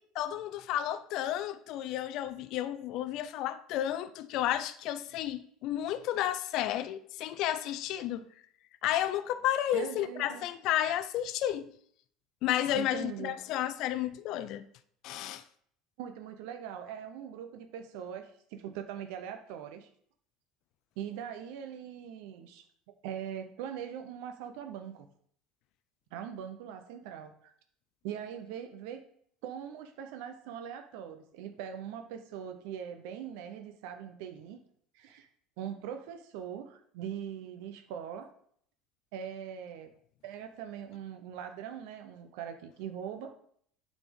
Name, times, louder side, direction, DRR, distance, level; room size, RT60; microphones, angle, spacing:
voice 1, 0.1-8.3 8.8-11.7 12.4-14.7 15.0-15.4, left 12 dB, 55° left, 0.5 m, -32 dB
voice 2, 9.7-10.4 12.7-13.3 16.0-19.9 21.0-22.6 23.0-25.1 26.1-27.5 28.0-29.0 29.4-34.6 34.9-35.3 35.6-38.3 39.1-39.9 40.2-43.3, right 9 dB, 75° right, 0.9 m, -41 dB
9.0 x 4.3 x 5.4 m
cardioid pair, 140°, 0 cm